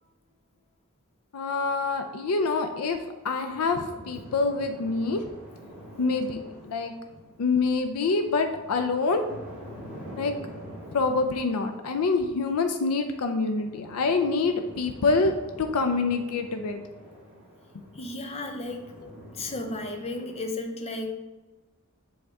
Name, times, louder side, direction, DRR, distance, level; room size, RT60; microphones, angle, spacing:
voice 1, 1.3-3.0 3.2-5.2 6.0-6.9 7.4-9.2 10.1-10.3 10.9-16.8, left 3 dB, 85° left, 6 dB, 0.5 m, -26 dB
sound 1, 1.6-20.5, equal, 10° right, 1.8 m, -47 dB
voice 2, 17.9-18.9 19.3-21.1, left 2 dB, 30° left, 4 dB, 0.7 m, -34 dB
7.7 x 3.5 x 3.5 m, 1.2 s
head